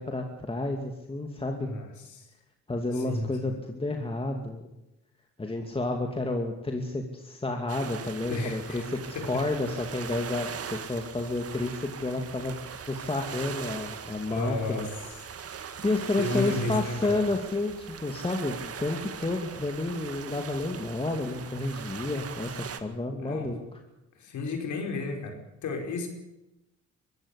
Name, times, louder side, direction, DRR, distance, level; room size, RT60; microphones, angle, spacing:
voice 1, 0.0-1.7 2.7-4.7 5.4-12.6 12.9-14.9 15.8-23.6, left 2 dB, 20° left, 3 dB, 2.5 m, -30 dB
voice 2, 1.6-2.3 2.9-3.5 8.3-8.8 9.1-9.5 14.3-14.9 16.2-17.2 23.2-23.6 24.1-26.1, left 2 dB, 75° left, 5 dB, 5.0 m, -33 dB
sound 1, 7.7-22.8, right 7 dB, 50° right, 2.0 m, -40 dB
23.5 x 15.0 x 8.3 m, 0.92 s
cardioid pair, 90°, 30 cm